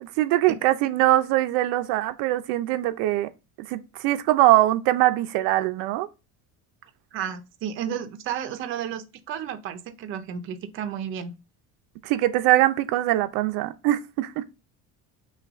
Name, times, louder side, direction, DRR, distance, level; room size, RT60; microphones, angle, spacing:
voice 1, 0.0-3.3 3.6-6.1 12.0-14.4, right 15 dB, 90° right, 0.6 m, -22 dB
voice 2, 7.1-11.3, right 9 dB, 35° right, 0.5 m, -32 dB
5.7 x 2.3 x 3.5 m
cardioid pair, 175°, 34 cm